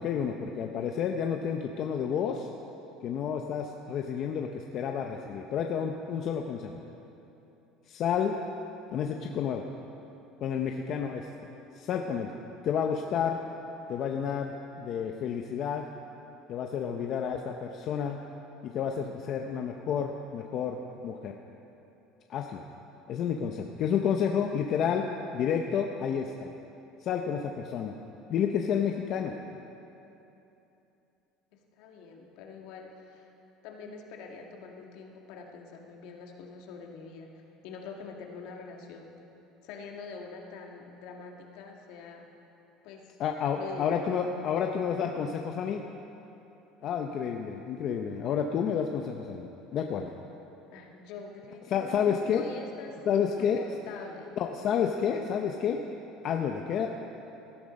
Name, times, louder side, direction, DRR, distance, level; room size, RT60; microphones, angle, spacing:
voice 1, 0.0-2.5 3.0-6.7 7.9-8.3 8.9-9.7 10.4-11.3 11.7-12.3 12.6-13.4 13.9-15.8 16.5-18.2 18.6-20.8 21.0-21.3 22.3-22.6 23.1-25.0 25.3-26.5 27.0-28.0 28.3-29.3 43.2-45.8 46.8-50.1 51.7-52.4 53.1-53.6 54.4-55.8 56.2-56.9, left 7 dB, 40° left, 3 dB, 0.7 m, -30 dB
voice 2, 31.8-33.3 33.6-39.1 39.6-42.3 42.8-43.2 43.5-44.1 50.7-54.3, left 5 dB, 65° left, 1 dB, 2.0 m, -45 dB
17.5 x 12.5 x 5.3 m, 2.9 s
cardioid pair, 160°, 0 cm